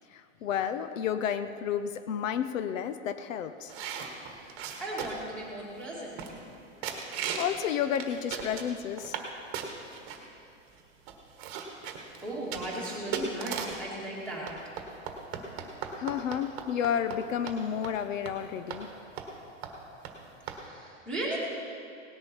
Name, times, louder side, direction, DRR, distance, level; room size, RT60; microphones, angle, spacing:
voice 1, 0.1-3.7 7.4-9.2 16.0-18.9, left 9 dB, 80° left, 11 dB, 0.8 m, -31 dB
sound 1, 3.7-5.3 5.8-5.9 6.2-6.6 6.8-7.6 7.9-9.3 9.5-10.2 10.8-10.9 11.1-13.9 14.5-17.2 17.5-17.6 17.8-18.0 18.3-18.4 18.7-18.8 19.2-19.4 19.6-19.7 20.0-20.1 20.5-20.6, right 7 dB, 30° right, 1.3 m, -37 dB
voice 2, 4.3-6.2 12.2-14.7 20.4-21.4, right 1 dB, 5° left, -6 dB, 2.2 m, -37 dB
18.0 x 10.5 x 4.5 m, 2.5 s
supercardioid pair, 175°, 38 cm